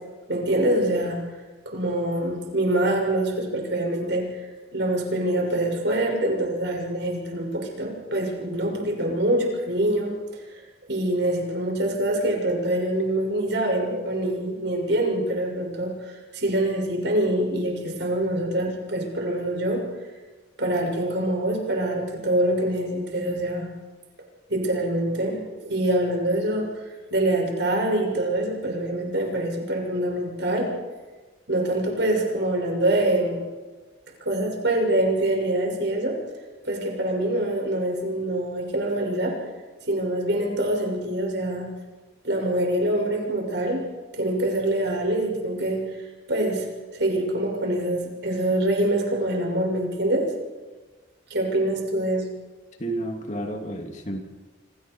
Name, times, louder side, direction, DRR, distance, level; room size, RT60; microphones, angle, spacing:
voice 1, 0.3-1.2 1.6-4.5 4.7-10.6 10.9-19.8 20.6-23.7 24.5-26.7 27.1-30.7 31.5-33.4 34.2-36.2 36.6-39.4 39.9-41.7 42.2-43.8 44.1-46.0 46.3-50.3 51.3-52.3, right 1 dB, 65° right, 1 dB, 6.7 m, -25 dB
voice 2, 52.8-54.2, right 1 dB, 40° left, 3 dB, 2.7 m, -31 dB
28.0 x 26.5 x 4.8 m, 1.3 s
head